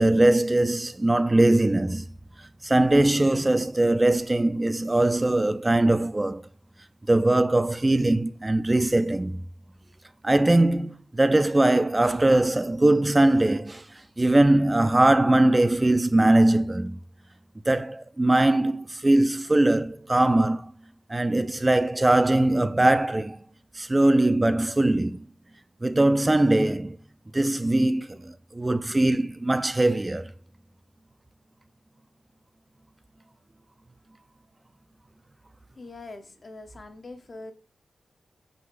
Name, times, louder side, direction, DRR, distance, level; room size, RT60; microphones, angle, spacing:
voice 1, 0.0-2.1 2.6-6.5 7.1-9.4 10.2-17.0 17.7-20.7 21.1-23.4 23.8-25.2 25.8-27.0 27.3-30.3, right 1 dB, 25° right, 0.3 m, -21 dB
voice 2, 35.8-37.5, left 2 dB, 50° left, 0.7 m, -42 dB
6.0 x 3.5 x 2.4 m
cardioid pair, 60°, 0 cm